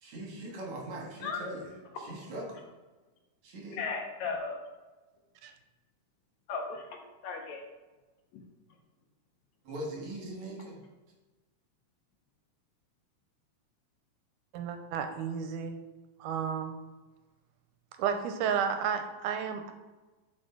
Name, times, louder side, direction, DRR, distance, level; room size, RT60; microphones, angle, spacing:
voice 1, 0.0-2.6 3.4-3.9 9.6-10.8, right 1 dB, 65° right, -2 dB, 2.9 m, -41 dB
voice 2, 3.8-4.6 6.5-7.6, left 4 dB, 70° left, 2 dB, 2.1 m, -36 dB
voice 3, 14.5-15.8 16.2-16.8 18.0-19.7, right 7 dB, 90° right, 7 dB, 2.2 m, -32 dB
8.0 x 5.0 x 3.8 m, 1.2 s
omnidirectional pair, 3.6 m